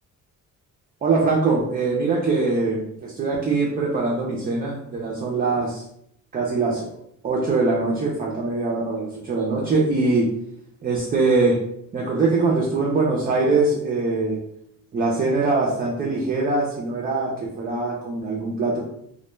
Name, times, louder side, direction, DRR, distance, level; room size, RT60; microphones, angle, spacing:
voice 1, 1.0-5.8 6.3-7.0 7.2-10.3 10.8-11.6 11.9-14.4 14.9-18.8, right 3 dB, 25° right, -3 dB, 0.4 m, -22 dB
2.1 x 2.1 x 3.0 m, 0.74 s
cardioid pair, 130°, 33 cm